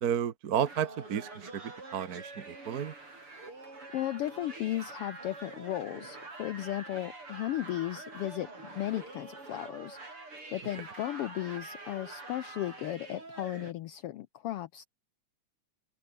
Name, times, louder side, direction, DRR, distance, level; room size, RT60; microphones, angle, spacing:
voice 1, 0.0-2.9, right 9 dB, 60° right, 1.0 m, -32 dB
sound 1, 0.6-13.7, right 3 dB, 45° right, 8.1 m, -46 dB
voice 2, 3.9-10.0 10.5-14.9, left 14 dB, 90° left, 1.2 m, -35 dB
open air
omnidirectional pair, 3.5 m